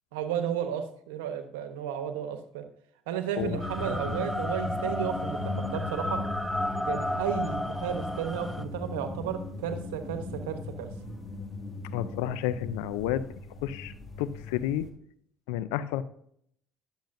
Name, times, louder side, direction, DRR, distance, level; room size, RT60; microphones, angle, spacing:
voice 1, 0.1-2.6 3.1-6.2 6.9-10.9, right 9 dB, 90° right, 8 dB, 1.0 m, -33 dB
sound 1, 3.4-14.9, left 3 dB, 15° left, 2.2 m, -38 dB
sound 2, 3.6-8.6, left 1 dB, 5° right, 0.6 m, -33 dB
voice 2, 11.9-13.2 13.6-14.9 15.5-16.0, left 12 dB, 85° left, 15 dB, 0.5 m, -31 dB
10.5 x 7.2 x 2.6 m, 0.67 s
supercardioid pair, 75°, 0 cm